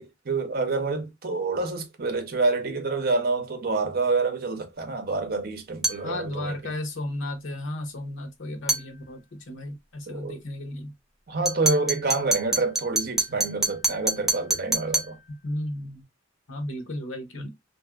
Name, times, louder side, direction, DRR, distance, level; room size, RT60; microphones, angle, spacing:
voice 1, 0.0-6.7 10.1-10.4 11.3-15.2, right 3 dB, 50° right, 0.7 m, -27 dB
sound 1, 5.8-6.1 8.7-8.9 11.5-15.2, right 3 dB, ahead, 0.5 m, -26 dB
voice 2, 6.0-10.9 15.4-16.0 16.5-17.5, left 1 dB, 90° left, 0.9 m, -34 dB
3.0 x 2.6 x 2.3 m
head